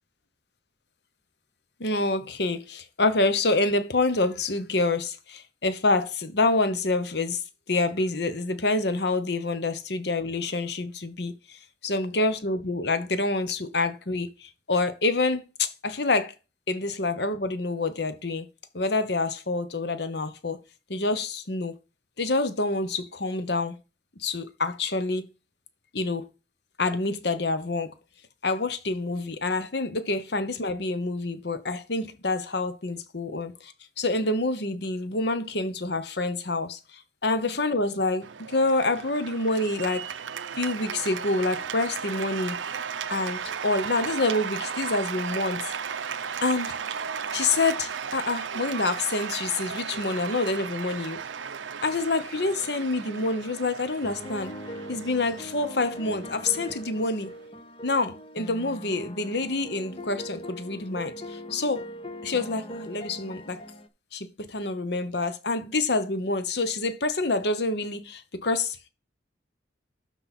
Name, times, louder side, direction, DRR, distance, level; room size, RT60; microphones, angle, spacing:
voice 1, 1.8-7.4 7.7-16.3 16.7-18.5 18.7-20.6 20.9-21.8 22.2-23.8 24.2-25.2 25.9-26.3 26.8-27.9 28.4-40.1 40.6-42.6 43.1-45.7 46.4-46.8 47.3-51.2 51.8-54.5 54.9-57.3 57.8-61.8 62.2-63.6 64.1-68.2 68.4-68.6, left 2 dB, 65° left, 1.0 m, -27 dB
Cheering / Applause, 38.2-57.5, right 6 dB, 85° right, 0.6 m, -35 dB
sound 1, 54.0-63.9, equal, 30° left, 0.6 m, -41 dB
12.0 x 4.1 x 4.2 m
head